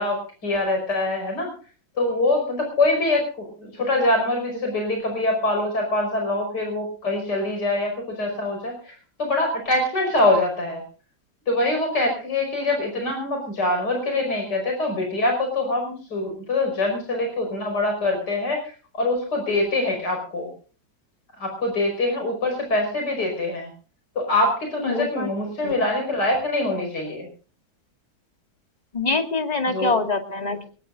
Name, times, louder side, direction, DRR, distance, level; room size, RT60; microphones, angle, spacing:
voice 1, 0.0-1.5 2.0-8.9 9.2-10.8 11.5-18.6 19.0-20.5 21.4-23.7 24.2-27.3 29.7-29.9, left 2 dB, 65° left, 3 dB, 6.0 m, -24 dB
voice 2, 24.9-25.3 25.6-25.7 28.9-30.6, left 3 dB, 20° left, 5 dB, 2.1 m, -24 dB
22.5 x 20.5 x 2.6 m, 0.38 s
omnidirectional pair, 2.0 m